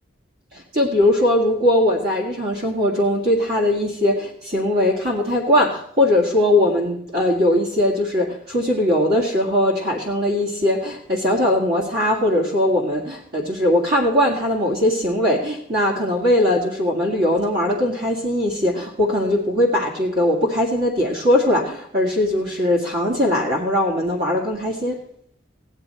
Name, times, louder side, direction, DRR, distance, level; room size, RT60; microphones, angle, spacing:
voice 1, 0.5-25.0, left 1 dB, 50° right, -1 dB, 2.0 m, -20 dB
16.5 x 10.5 x 4.4 m, 0.68 s
head